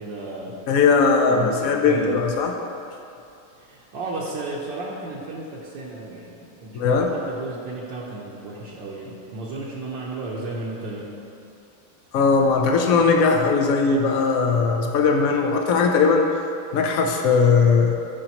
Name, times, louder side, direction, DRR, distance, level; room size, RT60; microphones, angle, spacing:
voice 1, 0.0-0.5 1.3-2.1 3.6-11.1, right 2 dB, 70° right, -5 dB, 1.5 m, -34 dB
voice 2, 0.7-2.6 6.7-7.1 12.1-16.3 16.7-18.0, left 5 dB, 75° left, 3 dB, 0.8 m, -19 dB
13.5 x 5.0 x 2.9 m, 2.6 s
omnidirectional pair, 2.2 m